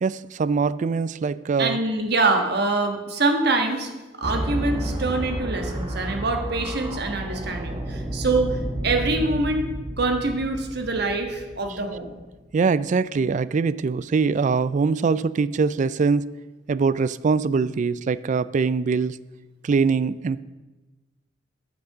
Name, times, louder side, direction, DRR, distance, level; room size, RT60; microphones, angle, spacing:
voice 1, 0.0-1.8 12.5-16.3 16.7-19.2 19.6-20.4, right 5 dB, 40° right, 18 dB, 0.3 m, -23 dB
voice 2, 1.6-3.9 4.2-8.6 8.8-9.7 10.0-12.2, right 3 dB, 60° right, 5 dB, 1.4 m, -24 dB
sound 1, 4.2-12.3, right 1 dB, 25° right, 1.2 m, -31 dB
11.5 x 6.0 x 6.7 m, 1.2 s
head